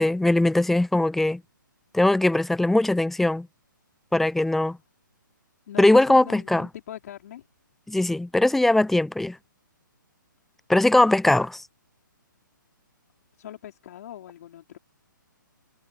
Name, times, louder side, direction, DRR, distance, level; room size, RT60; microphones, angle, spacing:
voice 1, 0.0-1.4 1.9-3.5 4.1-4.8 5.8-6.7 7.9-9.4 10.7-11.6, left 2 dB, ahead, 0.5 m, -20 dB
voice 2, 5.7-7.5 13.4-14.8, left 11 dB, 50° left, 5.1 m, -41 dB
hypercardioid pair, 140°, 11 cm